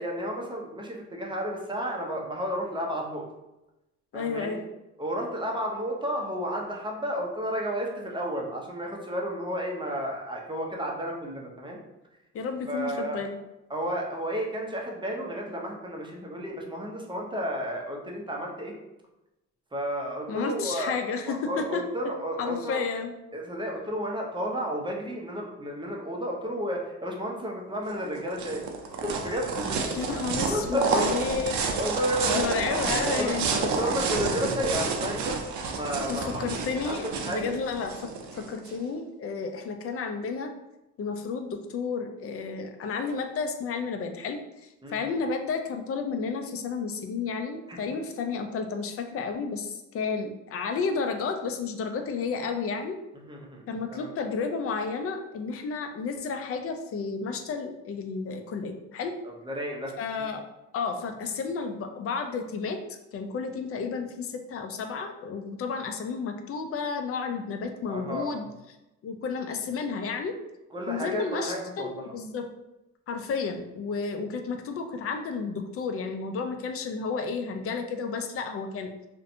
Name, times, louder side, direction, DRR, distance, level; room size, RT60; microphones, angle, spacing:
voice 1, 0.0-3.2 4.1-4.6 5.0-11.8 12.7-13.2 13.7-18.7 19.7-21.0 21.3-22.8 23.3-28.6 29.0-30.1 30.4-31.4 31.7-32.5 33.1-36.4 36.8-36.9 37.2-37.5 44.8-45.0 47.7-47.8 53.1-53.6 53.9-54.1 59.2-60.3 67.9-68.4 70.7-72.0, equal, 15° right, -1 dB, 0.5 m, -32 dB
voice 2, 4.1-4.6 12.3-13.4 20.3-21.8 22.4-23.1 29.9-31.8 32.2-33.5 36.1-40.5 41.0-53.0 53.7-59.1 60.0-60.4 60.7-68.5 69.0-70.3 70.9-72.4 73.1-78.9, left 5 dB, 50° left, 6 dB, 0.4 m, -32 dB
sound 1, 27.9-38.7, right 4 dB, 70° right, 0.5 m, -30 dB
2.6 x 2.1 x 2.5 m, 0.95 s
cardioid pair, 90°, 30 cm